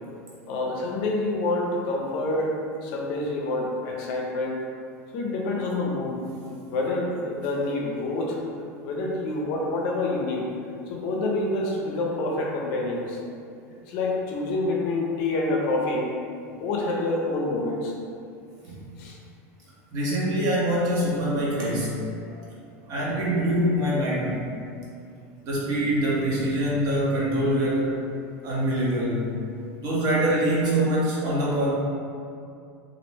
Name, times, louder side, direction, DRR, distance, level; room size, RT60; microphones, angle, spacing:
voice 1, 0.5-2.5 2.8-4.6 5.1-6.2 6.7-8.4 8.8-10.5 10.9-13.2 13.9-16.1 16.5-17.9 19.0-19.2, left 2 dB, 55° left, -1 dB, 0.5 m, -27 dB
voice 2, 19.9-22.0 22.3-22.4 22.9-24.5 25.4-27.9 28.4-29.3 29.8-31.7, right 1 dB, 50° right, -6 dB, 0.8 m, -24 dB
2.5 x 2.0 x 3.2 m, 2.4 s
supercardioid pair, 115°, 8 cm